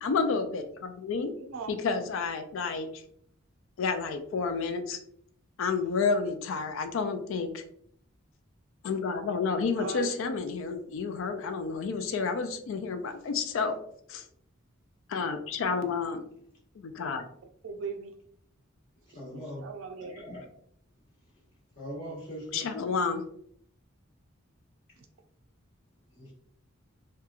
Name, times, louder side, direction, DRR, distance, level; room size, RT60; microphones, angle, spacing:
voice 1, 0.0-1.3 1.7-2.9 3.8-5.0 5.6-7.6 8.8-13.8 14.1-14.2 15.1-16.2 16.8-17.2 22.5-23.2, left 5 dB, 65° left, 8 dB, 0.4 m, -30 dB
voice 2, 1.3-1.8 9.8-10.1 17.6-18.1 19.3-20.2, right 5 dB, 70° right, 5 dB, 0.4 m, -39 dB
voice 3, 19.1-19.7 20.0-20.4 21.8-22.8 26.1-26.3, equal, 45° left, -7 dB, 0.9 m, -41 dB
2.8 x 2.3 x 2.3 m, 0.66 s
head